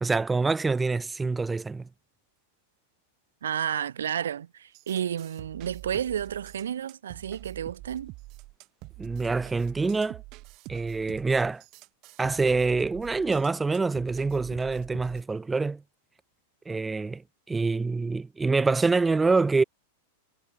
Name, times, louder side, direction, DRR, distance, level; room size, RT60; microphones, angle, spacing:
voice 1, 0.0-1.9 9.0-10.2 10.7-11.6 12.2-15.8 16.7-17.2 17.5-19.6, right 3 dB, 10° right, 0.4 m, -26 dB
voice 2, 3.4-8.1, right 9 dB, 85° right, 1.6 m, -31 dB
sound 1, 4.7-15.2, right 23 dB, 45° right, 2.5 m, -45 dB
hypercardioid pair, 120°, 0 cm